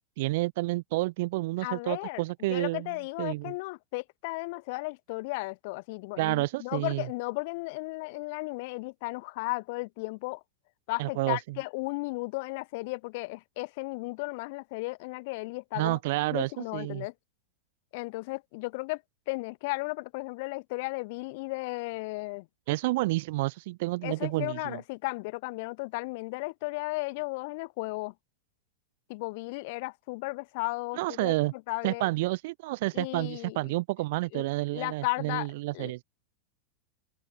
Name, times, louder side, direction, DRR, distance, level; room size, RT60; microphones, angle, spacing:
voice 1, 0.0-2.9 3.2-3.5 6.2-7.1 11.0-11.4 15.8-17.0 22.7-24.8 31.0-31.5 31.8-36.0, right 20 dB, 50° right, 0.8 m, -30 dB
voice 2, 1.6-2.2 2.5-10.4 10.9-16.0 16.3-17.1 17.9-19.0 19.3-22.5 24.0-28.1 29.1-32.1 32.9-33.6 34.3-34.5 34.7-35.5 35.7-35.9, left 25 dB, 50° left, 1.4 m, -35 dB
open air
figure-of-eight pair, 90°, 0 cm